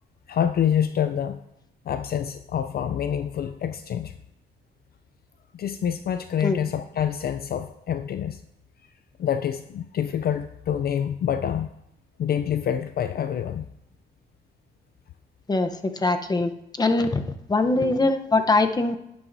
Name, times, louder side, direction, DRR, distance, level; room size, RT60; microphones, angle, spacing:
voice 1, 0.3-1.4 1.9-4.1 5.5-8.4 9.2-11.7 12.2-13.7, left 9 dB, 50° left, 10 dB, 0.4 m, -26 dB
voice 2, 16.0-16.5 16.8-17.2 17.5-19.0, left 2 dB, 20° left, 7 dB, 0.8 m, -22 dB
11.0 x 10.5 x 2.7 m, 0.81 s
cardioid pair, 90°, 20 cm